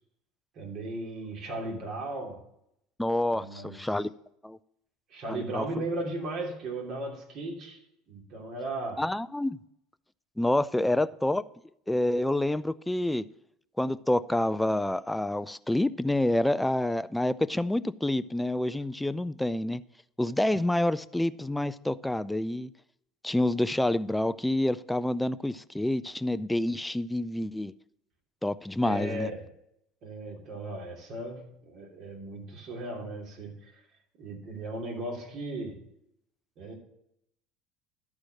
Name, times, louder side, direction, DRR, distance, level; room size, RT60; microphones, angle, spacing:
voice 1, 0.5-2.4 3.3-3.8 5.1-7.8 8.1-9.0 10.9-11.0 28.8-29.4 30.0-33.7 34.2-35.8 36.6-36.7, right 2 dB, 55° right, 3.0 m, -36 dB
voice 2, 3.0-4.1 4.4-4.6 5.3-5.7 9.0-9.6 10.4-11.4 11.9-13.2 13.8-19.8 20.2-22.7 23.2-27.7 28.4-29.3, left 1 dB, 5° left, 0.4 m, -28 dB
12.0 x 4.8 x 6.3 m
supercardioid pair, 90°, 0 cm